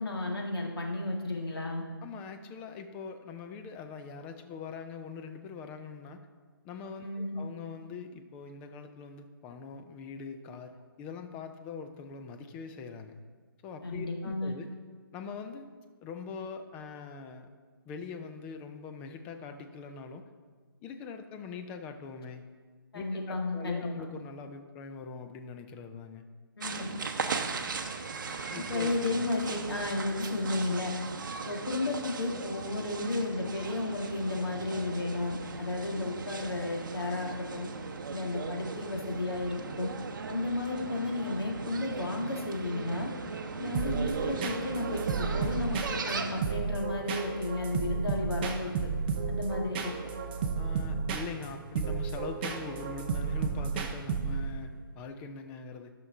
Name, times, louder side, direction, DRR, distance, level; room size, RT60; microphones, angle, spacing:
voice 1, 0.0-1.8 7.0-7.3 13.8-14.5 22.9-23.9 26.6-26.7 28.7-31.0 31.4-37.7 38.1-39.9 40.3-43.1 43.6-48.9 49.3-50.1, left 2 dB, 85° left, 0 dB, 1.8 m, -33 dB
voice 2, 2.0-6.3 6.6-13.2 13.6-14.7 15.1-15.7 16.0-17.5 17.9-20.2 20.8-22.5 22.9-26.2 28.5-28.9 50.5-55.9, left 5 dB, 10° left, 7 dB, 0.3 m, -43 dB
sound 1, 26.6-46.4, right 5 dB, 55° right, 0.8 m, -38 dB
sound 2, 43.7-54.6, right 5 dB, 25° right, 0.7 m, -33 dB
12.0 x 5.9 x 3.7 m, 1.5 s
hypercardioid pair, 155°, 12 cm